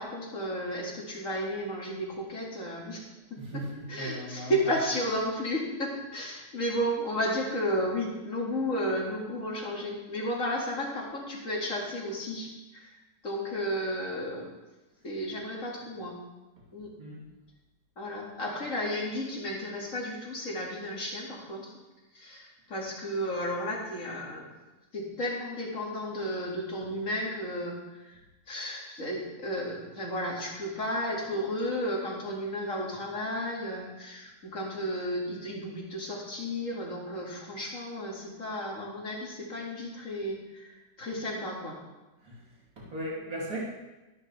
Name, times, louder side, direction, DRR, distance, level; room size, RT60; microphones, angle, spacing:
voice 1, 0.0-3.0 3.3-3.6 3.9-14.6 15.0-16.2 16.7-16.9 18.0-21.7 22.1-24.5 24.9-28.2 28.5-41.8, equal, 45° left, -2 dB, 2.5 m, -33 dB
voice 2, 3.4-4.6 17.0-17.3 42.2-42.4 42.8-43.6, right 1 dB, 50° right, -5 dB, 3.2 m, -37 dB
13.0 x 11.5 x 3.3 m, 1.1 s
omnidirectional pair, 1.9 m